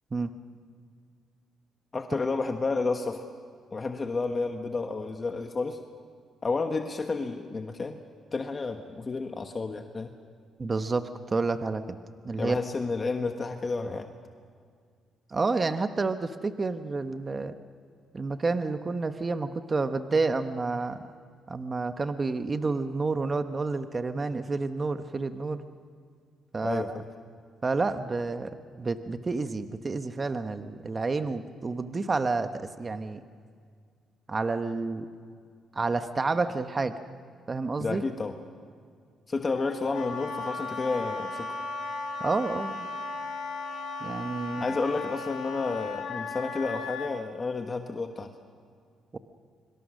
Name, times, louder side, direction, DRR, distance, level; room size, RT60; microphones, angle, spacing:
voice 1, 1.9-3.2 3.7-5.8 6.4-8.0 8.3-10.1 12.4-14.1 26.6-27.0 37.8-38.3 39.3-41.6 44.6-48.3, left 3 dB, 30° left, 6 dB, 1.2 m, -31 dB
voice 2, 10.6-12.0 12.2-12.6 15.3-17.5 18.1-21.0 21.5-25.6 26.5-26.8 27.6-33.2 34.3-35.1 35.7-37.0 37.5-38.0 42.2-42.9 44.0-44.7 49.1-49.2, right 3 dB, 30° right, 9 dB, 1.0 m, -29 dB
Wind instrument woodwind instrument, 39.5-47.1, left 3 dB, 75° left, 4.4 m, -36 dB
25.0 x 24.5 x 6.4 m, 2.1 s
cardioid pair, 90°, 0 cm